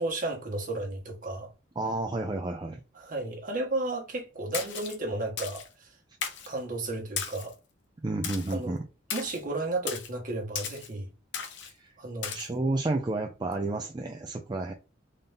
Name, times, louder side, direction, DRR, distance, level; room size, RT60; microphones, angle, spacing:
voice 1, 0.0-1.5 2.9-5.9 6.5-7.6 8.5-8.8 9.1-11.1 12.0-12.4, right 2 dB, 45° right, 1.3 m, -33 dB
voice 2, 1.8-2.8 8.0-8.8 11.6-11.9 12.3-14.7, right 2 dB, 20° right, 0.4 m, -31 dB
Splash splatter, 4.5-5.0 5.4-5.7 6.2-6.5 7.2-7.5 8.2-8.6 9.1-9.4 9.9-10.1 10.6-10.9 11.3-11.7 12.2-12.5, left 7 dB, 65° left, 0.8 m, -35 dB
3.9 x 2.6 x 3.4 m
head